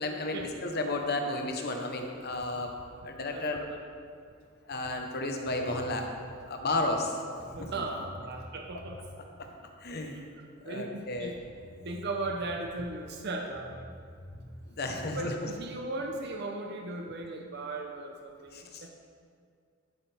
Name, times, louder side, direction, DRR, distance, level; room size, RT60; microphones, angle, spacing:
voice 1, 0.0-2.7 3.0-3.6 4.6-6.1 6.4-7.2 9.8-10.2 10.6-11.3 14.8-15.3 18.5-18.8, left 2 dB, 50° left, 3 dB, 1.1 m, -32 dB
voice 2, 3.3-3.8 7.5-9.0 10.1-10.2 10.6-11.4 11.8-13.9 15.0-18.9, right 2 dB, 55° right, 2 dB, 0.8 m, -37 dB
sound 1, 5.4-6.0 7.0-7.1 7.4-9.1 11.2-11.3 11.6-12.8 13.5-15.2, left 1 dB, 35° left, 2.1 m, -48 dB
11.5 x 9.1 x 3.5 m, 2.2 s
head